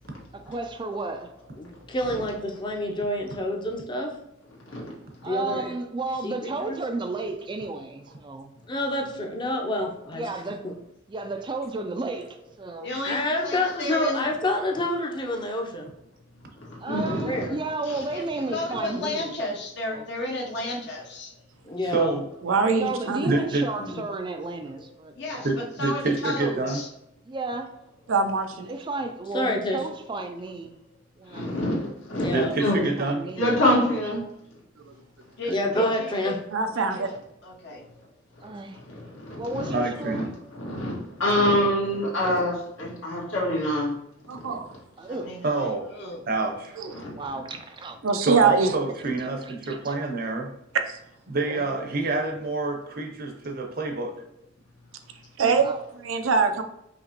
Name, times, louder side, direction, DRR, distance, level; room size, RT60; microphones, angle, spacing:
voice 1, 0.3-1.3 5.2-8.5 10.1-10.7 11.1-12.9 16.8-19.4 19.9-20.1 22.7-25.4 27.3-27.7 28.7-30.7 31.2-31.6 32.7-34.0 35.7-36.0 38.4-38.8 39.3-40.3 45.0-45.3 45.6-45.7 47.1-48.0 49.2-50.0 51.5-51.7 55.5-55.8, right 3 dB, 25° right, 6 dB, 0.3 m, -33 dB
voice 2, 1.6-4.1 5.3-5.7 6.2-6.8 8.7-10.3 10.6-10.7 13.0-15.9 17.1-17.6 21.6-22.1 29.3-29.8 32.2-32.6 35.5-36.3, left 1 dB, 25° left, 1 dB, 0.7 m, -28 dB
voice 3, 12.8-14.3 18.1-21.3 25.1-26.9 35.4-36.4 36.7-37.1 37.4-37.8 45.0-46.4, left 1 dB, 60° left, -1 dB, 0.9 m, -33 dB
voice 4, 16.7-17.5 17.8-18.0 23.8-24.0 31.3-32.8 33.3-34.2 38.9-43.9 46.9-47.1, left 1 dB, 80° left, -4 dB, 1.6 m, -26 dB
voice 5, 21.8-22.3 23.2-23.7 25.4-26.8 32.3-33.2 39.7-40.2 45.4-45.8 46.3-46.8 48.2-50.5 51.3-54.1, right 3 dB, 50° right, 3 dB, 0.7 m, -27 dB
voice 6, 22.4-23.3 28.1-28.7 34.8-34.9 36.5-37.1 44.3-44.7 46.8-46.9 48.0-48.7 50.9-51.0 55.4-55.6 56.1-56.6, right 5 dB, 85° right, 7 dB, 0.5 m, -23 dB
5.1 x 2.9 x 2.9 m, 0.79 s
head